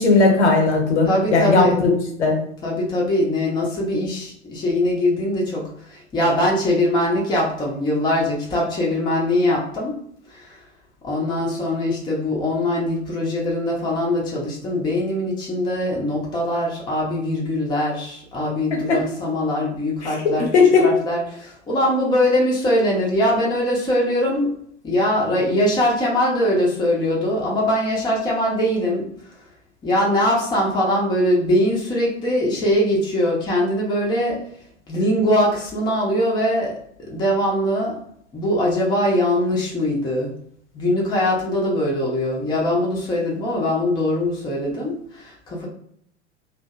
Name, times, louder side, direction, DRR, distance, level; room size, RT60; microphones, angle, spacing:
voice 1, 0.0-1.9 2.2-2.4 18.9-19.0 20.0-20.1 20.5-20.8, left 4 dB, 70° left, 1 dB, 0.9 m, -16 dB
voice 2, 1.1-1.8 2.6-10.0 10.3-10.6 11.0-20.5 20.8-24.5 24.8-29.1 29.8-34.4 34.9-36.7 37.0-38.0 38.3-40.3 40.7-45.7, left 1 dB, 10° left, -4 dB, 0.6 m, -22 dB
2.5 x 2.0 x 2.4 m, 0.67 s
figure-of-eight pair, 90°, 36 cm